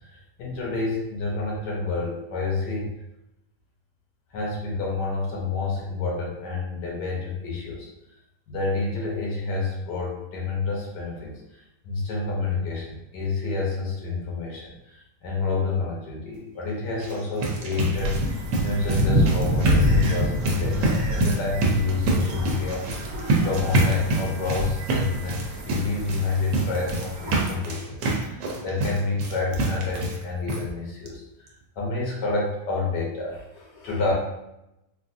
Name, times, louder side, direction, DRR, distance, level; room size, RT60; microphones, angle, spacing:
voice 1, 0.4-2.9 4.3-7.9 8.5-11.4 11.8-14.7 15.2-22.8 23.4-31.2 31.8-34.1, left 4 dB, 85° left, -3 dB, 1.5 m, -28 dB
sound 1, 16.9-30.2 30.5-30.6 31.1-31.2 31.5-31.6, right 3 dB, 85° right, 1.3 m, -27 dB
sound 2, 17.9-27.5, equal, 65° right, 1.1 m, -27 dB
3.7 x 2.5 x 2.6 m, 0.89 s
omnidirectional pair, 1.8 m